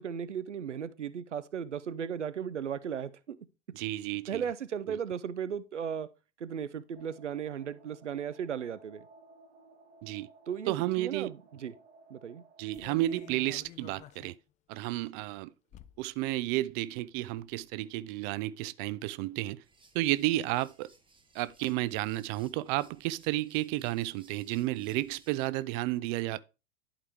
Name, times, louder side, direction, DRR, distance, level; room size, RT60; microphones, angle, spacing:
voice 1, 0.0-3.4 4.3-6.1 6.4-9.1 10.5-11.7 12.1-12.4, right 8 dB, 90° right, 0.6 m, -36 dB
voice 2, 3.7-4.4 4.9-5.0 10.0-10.3 10.7-11.3 12.6-14.4 14.7-15.5 16.0-19.6 19.9-20.9 21.3-26.4, right 16 dB, 45° right, 0.5 m, -32 dB
sound 1, 6.9-13.5, right 3 dB, 65° right, 1.4 m, -58 dB
sound 2, 12.7-14.4 14.8-14.9 15.7-16.1 16.4-16.5 17.0-17.6 18.0-18.1, left 12 dB, 20° left, 0.3 m, -51 dB
sound 3, 19.6-25.5, right 3 dB, 15° right, 1.4 m, -63 dB
11.0 x 4.9 x 3.4 m
figure-of-eight pair, 85°, 35 cm